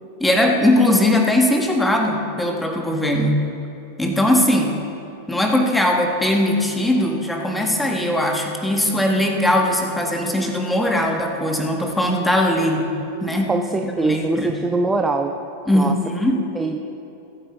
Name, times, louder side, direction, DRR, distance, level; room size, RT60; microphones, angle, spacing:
voice 1, 0.2-3.4 4.0-4.8 5.3-12.9 13.2-13.5 13.8-14.5 15.7-16.4, left 1 dB, 5° left, 2 dB, 1.6 m, -20 dB
Bowed string instrument, 6.9-12.6 13.2-13.3, right 4 dB, 60° right, 2.6 m, -42 dB
voice 2, 13.5-15.3 15.7-15.9 16.5-16.9, right 3 dB, 10° right, 5 dB, 0.6 m, -22 dB
21.0 x 9.1 x 3.7 m, 3.0 s
figure-of-eight pair, 90°, 0 cm